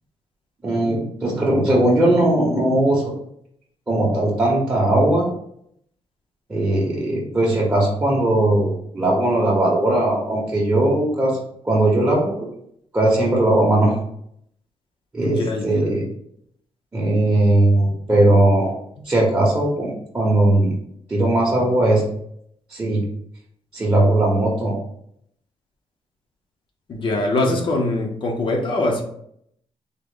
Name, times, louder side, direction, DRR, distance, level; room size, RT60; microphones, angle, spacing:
voice 1, 0.6-3.0 3.9-5.3 6.5-11.4 11.6-12.5 12.9-14.0 15.1-16.1 16.9-18.7 19.0-20.8 21.1-22.0 22.7-23.0 23.7-24.7, right 1 dB, 15° right, -6 dB, 0.8 m, -18 dB
voice 2, 15.2-15.7 26.9-29.0, left 2 dB, 45° left, 2 dB, 0.6 m, -22 dB
3.5 x 2.1 x 3.6 m, 0.70 s
wide cardioid pair, 155°, 11 cm